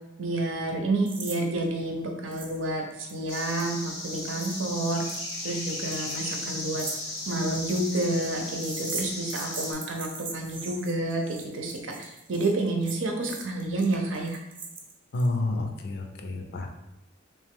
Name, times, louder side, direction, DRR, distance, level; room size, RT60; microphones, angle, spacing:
voice 1, 0.2-5.0 5.4-6.8 7.3-14.4, right 2 dB, 70° right, 2 dB, 0.7 m, -29 dB
sound 1, 1.1-1.4 1.6-1.7 2.3-2.6 2.9-15.3, right 4 dB, 25° right, 0.5 m, -41 dB
sound 2, 3.3-9.7, left 2 dB, 85° left, 1.0 m, -36 dB
voice 2, 15.1-16.7, left 2 dB, 55° left, 3 dB, 0.5 m, -29 dB
3.2 x 3.0 x 3.5 m, 0.94 s
head